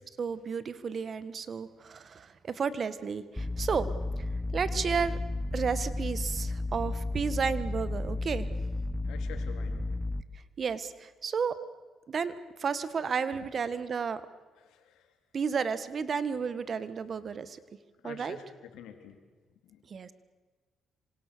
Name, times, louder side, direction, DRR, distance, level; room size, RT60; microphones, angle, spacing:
voice 1, 0.2-3.9 4.5-5.2 5.5-8.5 10.6-11.6 12.1-12.3 12.6-14.2 15.3-17.6 18.0-18.4 19.9-20.1, right 6 dB, 45° right, 14 dB, 1.5 m, -32 dB
sound 1, 3.4-10.2, left 2 dB, 10° left, 1.1 m, -33 dB
voice 2, 9.0-9.9 13.4-13.5 14.6-15.2 18.0-19.2 19.6-19.8, left 8 dB, 90° left, 7 dB, 3.0 m, -48 dB
26.5 x 25.5 x 6.9 m, 1.4 s
cardioid pair, 90°, 0 cm